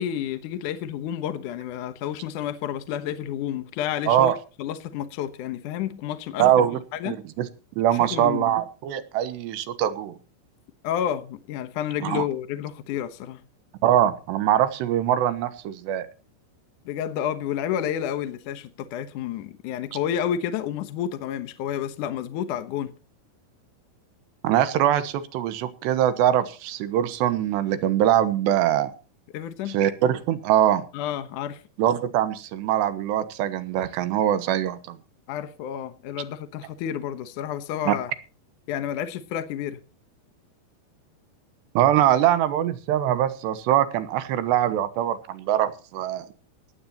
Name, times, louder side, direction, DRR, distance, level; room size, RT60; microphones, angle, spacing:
voice 1, 0.0-6.7 6.9-7.2 7.9-8.6 10.8-13.4 16.9-22.9 29.3-29.8 30.9-31.6 35.3-38.1 38.7-39.8, left 10 dB, 70° left, 2.0 m, -30 dB
voice 2, 6.4-6.8 7.1-7.5 7.8-10.1 12.0-12.2 13.8-16.1 24.4-28.9 29.7-30.8 31.8-35.0 37.9-38.0 41.7-46.3, right 11 dB, 80° right, 3.4 m, -22 dB
18.0 x 15.5 x 2.9 m
omnidirectional pair, 4.9 m